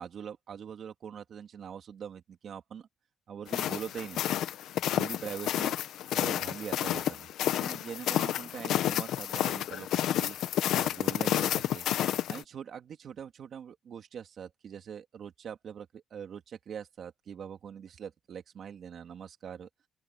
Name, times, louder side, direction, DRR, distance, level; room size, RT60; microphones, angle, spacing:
voice 1, 0.0-2.9 3.3-4.2 4.9-5.7 6.1-7.3 7.6-10.4 10.7-11.9 12.3-19.7, right 8 dB, 55° right, 2.6 m, -43 dB
sound 1, 3.5-12.4, left 11 dB, 85° left, 1.1 m, -30 dB
open air
cardioid pair, 125°, 0 cm